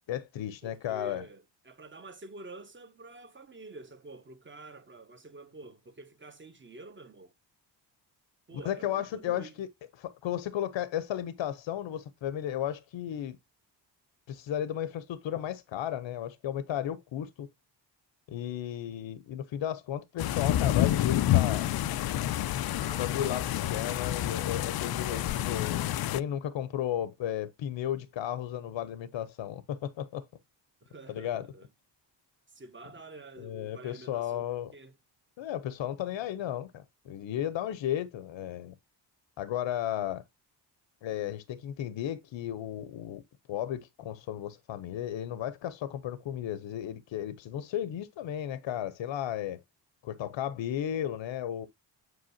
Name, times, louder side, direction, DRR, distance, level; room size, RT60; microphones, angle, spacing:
voice 1, 0.1-1.2 8.6-9.7 10.0-13.4 14.3-17.5 18.3-21.7 23.0-30.2 31.1-31.5 33.4-34.7 35.4-38.7 39.4-40.2 41.0-43.2 43.5-49.6 50.0-51.7, left 11 dB, 75° left, 0.9 m, -34 dB
voice 2, 0.6-7.3 8.5-9.5 22.8-24.0 25.1-25.9 30.8-31.7 32.5-34.9, right 2 dB, 25° right, 1.4 m, -48 dB
sound 1, 20.2-26.2, left 13 dB, 55° left, 0.5 m, -28 dB
7.8 x 5.4 x 2.8 m
cardioid pair, 105°, 45 cm